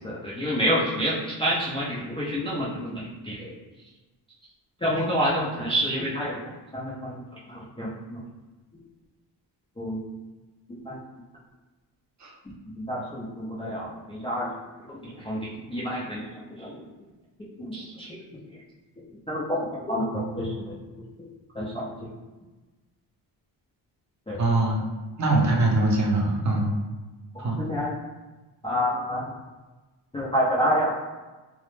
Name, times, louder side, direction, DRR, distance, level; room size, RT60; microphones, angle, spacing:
voice 1, 0.0-3.5 4.8-6.4 6.7-7.2 7.8-8.2 9.8-10.0 10.9-11.0 12.8-14.5 15.2-16.2 16.6-16.8 17.6-18.2 19.3-19.4 19.9-20.1 20.3-20.8 21.6-21.8 24.3-24.4 27.6-27.9 28.6-29.3 30.1-31.0, equal, 15° left, -7 dB, 0.3 m, -28 dB
voice 2, 24.4-24.8 25.2-26.7 27.4-27.6, right 2 dB, 40° right, -1 dB, 0.5 m, -22 dB
2.0 x 2.0 x 3.0 m, 1.2 s
cardioid pair, 100°, 45 cm